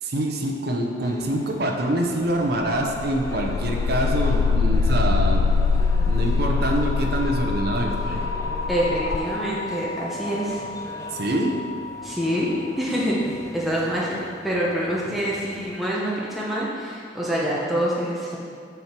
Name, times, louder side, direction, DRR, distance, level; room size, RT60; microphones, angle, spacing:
voice 1, 0.0-5.5 6.1-8.2 11.1-11.6, right 1 dB, 55° right, 1 dB, 0.7 m, -25 dB
sound 1, 1.0-15.8, left 1 dB, 15° left, 0.5 m, -41 dB
sound 2, 2.6-12.5, left 4 dB, 75° left, 0.4 m, -24 dB
voice 2, 8.7-10.6 12.0-12.5 12.8-13.2 13.5-18.4, equal, ahead, -6 dB, 0.9 m, -26 dB
6.8 x 5.9 x 4.5 m, 2.2 s
head